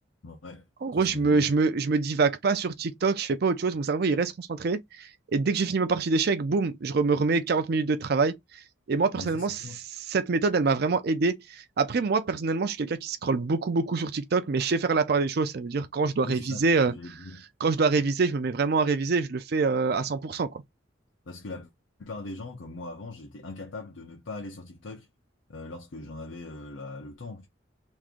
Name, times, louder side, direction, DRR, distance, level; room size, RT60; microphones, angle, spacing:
voice 1, 0.2-0.7 0.9-1.5 9.1-9.8 16.2-17.4 21.3-21.7 22.0-25.1 25.5-27.5, left 2 dB, 90° left, 0.7 m, -41 dB
voice 2, 0.8-8.6 8.9-9.6 10.1-17.0 17.6-20.5, right 4 dB, 55° right, 0.5 m, -25 dB
3.1 x 2.5 x 3.6 m
head